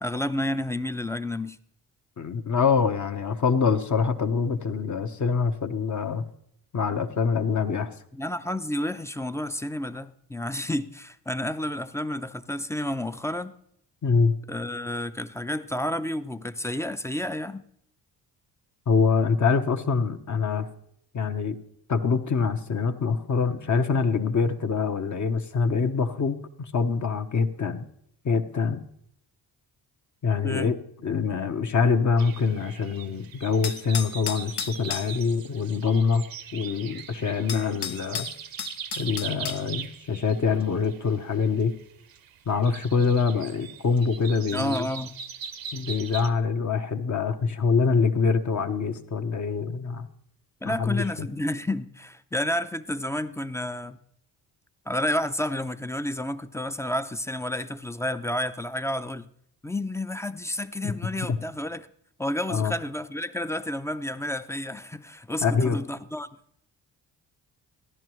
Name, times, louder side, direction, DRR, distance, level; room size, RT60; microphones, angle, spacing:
voice 1, 0.0-1.6 8.1-13.5 14.5-17.6 30.4-30.7 44.5-45.1 50.6-54.0 54.9-59.3 59.6-61.9 62.2-66.3, left 1 dB, 5° left, 0.4 m, -30 dB
voice 2, 2.2-6.2 6.7-7.9 14.0-14.3 18.9-20.7 21.1-21.6 21.9-26.4 26.7-27.8 28.2-28.8 30.2-30.8 31.0-36.3 36.5-38.3 39.0-41.7 42.5-44.9 45.7-50.1 50.7-51.3 60.8-60.9 61.3-61.4 62.5-62.7 65.4-65.8, left 5 dB, 45° left, 0.9 m, -25 dB
sound 1, 32.2-46.3, right 7 dB, 55° right, 0.6 m, -41 dB
sound 2, 33.6-35.1 37.0-37.1 37.5-39.6, left 8 dB, 65° left, 0.7 m, -33 dB
14.0 x 10.5 x 3.1 m
supercardioid pair, 60°, 42 cm